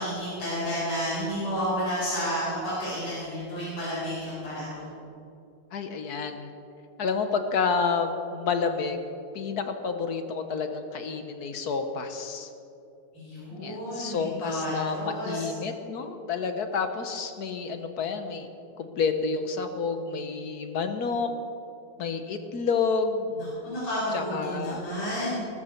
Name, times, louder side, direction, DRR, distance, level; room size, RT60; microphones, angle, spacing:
voice 1, 0.0-5.0 13.1-15.5 23.3-25.4, equal, 90° left, -9 dB, 5.6 m, -31 dB
voice 2, 5.7-6.5 7.0-9.0 9.3-12.5 13.5-18.5 18.8-21.3 22.0-23.3 24.1-24.8, left 5 dB, 55° left, 7 dB, 1.2 m, -29 dB
19.5 x 13.5 x 4.4 m, 2.7 s
omnidirectional pair, 2.4 m